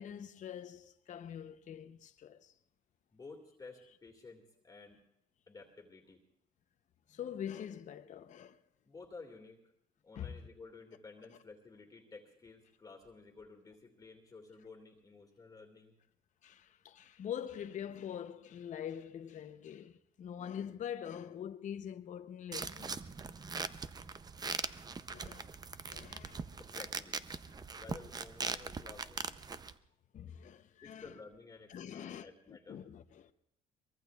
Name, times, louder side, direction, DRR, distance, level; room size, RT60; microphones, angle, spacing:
voice 1, 0.0-2.5 7.1-8.6 10.2-10.4 16.4-22.9 25.1-25.5 25.9-26.5 30.1-31.1 31.7-33.3, left 9 dB, 45° left, 0.8 m, -44 dB
voice 2, 3.1-5.0 5.5-6.2 8.8-9.7 10.0-16.0 26.6-27.2 27.7-29.3 30.8-32.8, left 4 dB, 20° left, 2.1 m, -53 dB
sound 1, 22.5-29.7, right 4 dB, 25° right, 0.6 m, -41 dB
23.5 x 22.0 x 2.4 m
cardioid pair, 110°, 17 cm